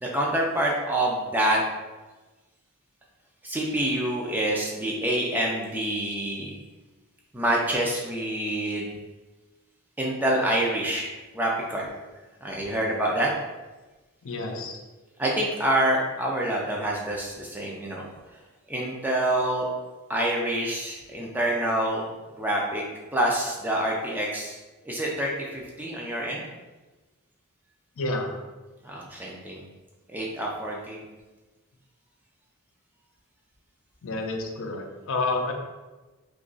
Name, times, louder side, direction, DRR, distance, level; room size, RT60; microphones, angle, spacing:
voice 1, 0.0-1.6 3.4-6.6 7.3-9.0 10.0-11.9 12.4-13.3 15.2-18.0 18.7-19.7 20.1-22.8 23.1-24.6 24.8-26.4 28.8-29.6 30.1-31.0, right 1 dB, 10° right, -3 dB, 0.4 m, -27 dB
voice 2, 14.2-14.8 28.0-28.3 34.0-35.5, left 2 dB, 65° left, 2 dB, 0.5 m, -29 dB
2.8 x 2.4 x 3.8 m, 1.2 s
head